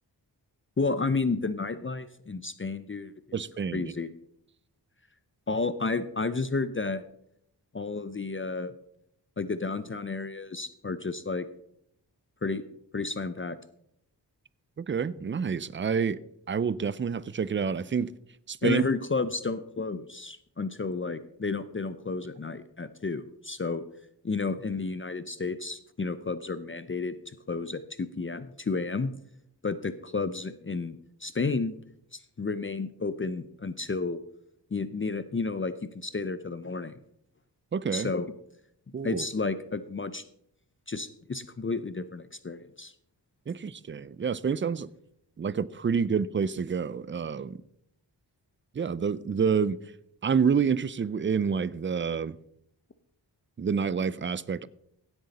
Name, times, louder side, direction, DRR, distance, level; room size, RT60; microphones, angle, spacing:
voice 1, 0.8-3.4 3.7-4.1 5.5-7.1 7.7-8.7 9.4-11.5 12.4-12.6 12.9-13.6 18.6-23.8 24.2-27.2 27.5-29.1 29.6-31.7 32.1-34.2 34.7-37.0 37.9-38.3 39.0-40.2 40.9-42.9, left 4 dB, 30° left, 0.6 m, -31 dB
voice 2, 3.3-3.9 14.8-16.2 16.5-18.1 18.5-18.8 37.7-38.1 38.9-39.2 43.5-44.9 45.4-47.6 48.8-49.8 50.2-52.4 53.6-54.7, right 6 dB, 30° right, 0.4 m, -28 dB
16.5 x 8.0 x 4.1 m
wide cardioid pair, 80°, 42 cm